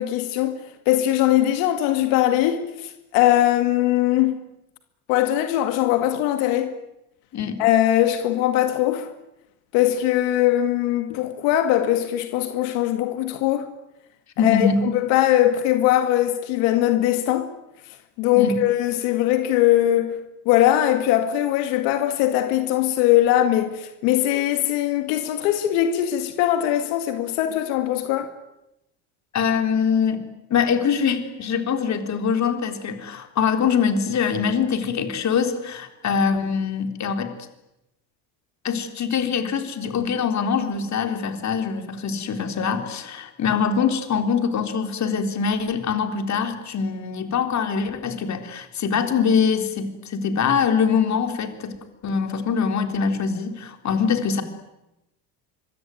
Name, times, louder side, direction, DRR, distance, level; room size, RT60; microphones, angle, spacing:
voice 1, 0.0-4.4 5.1-6.8 7.6-9.1 9.7-13.7 14.4-17.5 18.2-20.2 20.5-28.3, left 13 dB, 85° left, 2.2 m, -21 dB
voice 2, 14.4-14.8 18.4-18.6 29.3-30.2 30.5-37.5 38.6-51.8 52.0-54.4, left 6 dB, 40° left, 3.9 m, -23 dB
25.5 x 23.0 x 9.5 m
cardioid pair, 120°, 40 cm